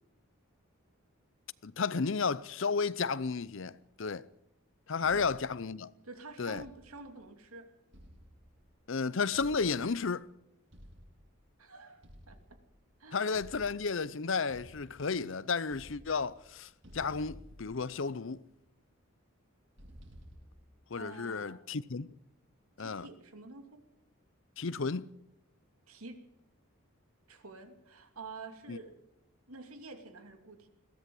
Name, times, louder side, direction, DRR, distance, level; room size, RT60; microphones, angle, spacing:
voice 1, 1.6-4.2 4.9-5.9 6.4-6.6 8.9-10.3 13.1-18.4 20.9-22.1 22.8-23.1 24.6-25.1 28.7-28.8, left 5 dB, 60° left, 0.6 m, -33 dB
sound 1, 5.0-5.6 6.6-7.1 7.9-8.7 9.3-10.1 10.7-11.3 12.0-12.8 13.3-14.0 14.5-15.3 15.6-16.5 16.8-18.3 19.8-20.7, equal, 55° right, 7.6 m, -54 dB
voice 2, 6.0-7.7 11.6-12.4 13.0-13.4 20.9-21.6 22.8-23.8 25.9-26.3 27.3-29.0 29.5-30.7, right 3 dB, 85° right, 2.7 m, -49 dB
21.5 x 16.5 x 7.8 m
head